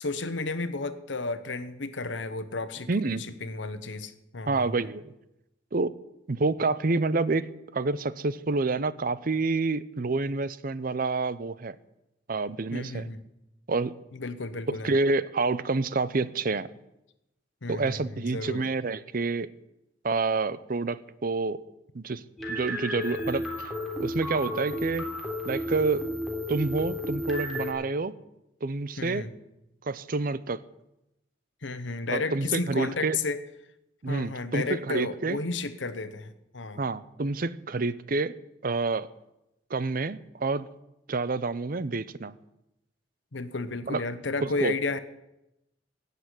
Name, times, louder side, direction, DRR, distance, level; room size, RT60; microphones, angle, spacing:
voice 1, 0.0-4.9 12.7-13.2 14.1-14.9 17.6-18.6 29.0-29.3 31.6-33.4 34.1-36.8 43.3-45.0, left 3 dB, 80° left, 12 dB, 1.1 m, -33 dB
voice 2, 2.9-3.2 4.5-5.1 5.7-5.9 6.3-11.8 12.3-13.1 13.7-13.9 14.7-16.7 17.7-19.5 20.0-21.6 21.9-22.2 22.5-23.7 24.0-25.1 25.4-26.0 26.5-28.1 28.6-29.2 29.8-30.6 32.1-33.2 34.0-35.4 36.8-38.4 38.6-39.1 39.7-40.7 41.1-42.3 43.9-44.0 44.4-44.8, right 3 dB, 50° right, 16 dB, 0.7 m, -28 dB
sound 1, 22.4-27.7, left 1 dB, ahead, 3.4 m, -33 dB
16.5 x 7.0 x 9.7 m, 0.90 s
head